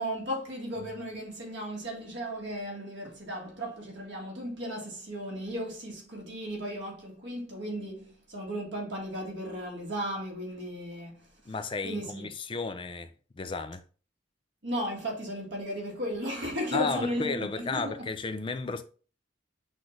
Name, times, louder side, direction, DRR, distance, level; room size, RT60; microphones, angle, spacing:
voice 1, 0.0-11.5 11.8-12.3 14.6-17.9 18.7-18.8, equal, 60° right, 1.7 m, -35 dB
voice 2, 11.5-13.8 16.7-18.8, left 4 dB, 25° left, 0.3 m, -33 dB
6.1 x 2.5 x 3.2 m
head